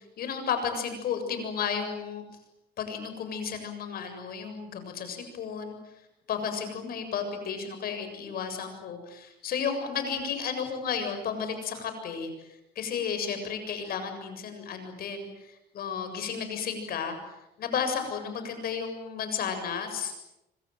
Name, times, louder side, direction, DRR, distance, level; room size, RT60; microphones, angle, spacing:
voice 1, 0.0-2.2 2.8-5.8 6.3-20.1, left 6 dB, 60° left, 7 dB, 7.4 m, -33 dB
26.5 x 26.0 x 7.8 m, 0.89 s
cardioid pair, 110°, 17 cm